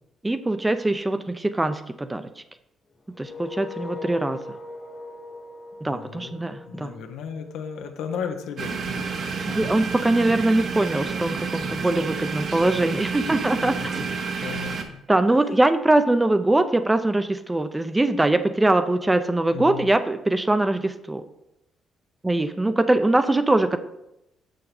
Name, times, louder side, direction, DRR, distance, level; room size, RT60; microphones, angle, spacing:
voice 1, 0.2-2.3 3.2-4.4 5.8-6.9 9.6-13.9 15.1-21.2 22.2-23.8, right 2 dB, 15° right, 10 dB, 0.5 m, -22 dB
sound 1, 3.1-8.0, left 4 dB, 25° left, 1.0 m, -40 dB
voice 2, 5.8-9.6 11.6-12.1 13.6-14.0 14.4-15.0 19.5-20.0, left 7 dB, 85° left, 5 dB, 0.9 m, -36 dB
sound 2, 8.6-14.8, right 5 dB, 60° right, 0.9 m, -30 dB
6.5 x 6.4 x 4.2 m, 0.86 s
cardioid pair, 90°, 0 cm